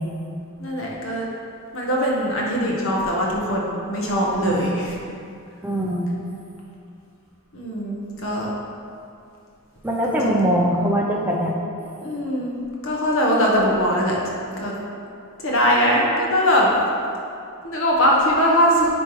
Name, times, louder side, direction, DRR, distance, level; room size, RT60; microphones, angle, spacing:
voice 1, 0.6-1.3 1.7-5.0 7.5-8.5 10.1-10.5 12.0-12.5 12.8-14.2 14.6-14.7 15.4-16.7 17.6-18.9, equal, 65° left, -3 dB, 1.3 m, -21 dB
voice 2, 4.4-4.7 5.6-6.1 9.8-11.5, equal, 10° right, -3 dB, 0.7 m, -22 dB
9.4 x 3.4 x 4.9 m, 2.5 s
head